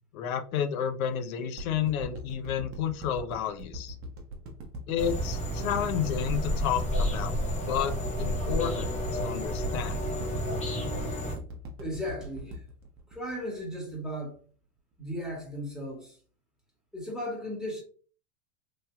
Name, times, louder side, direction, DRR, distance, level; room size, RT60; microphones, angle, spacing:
voice 1, 0.1-4.0 4.9-7.4 7.7-8.9 9.2-10.0, left 9 dB, 70° left, 0.6 m, -31 dB
sound 1, 1.6-13.9 14.3-14.4, right 1 dB, 30° right, 0.8 m, -40 dB
sound 2, 5.0-11.4, equal, 15° left, 0.7 m, -31 dB
voice 2, 11.8-12.6 13.1-14.3 15.0-16.2 16.9-17.8, equal, ahead, 1.3 m, -36 dB
3.1 x 2.7 x 2.2 m
hypercardioid pair, 100°, 44 cm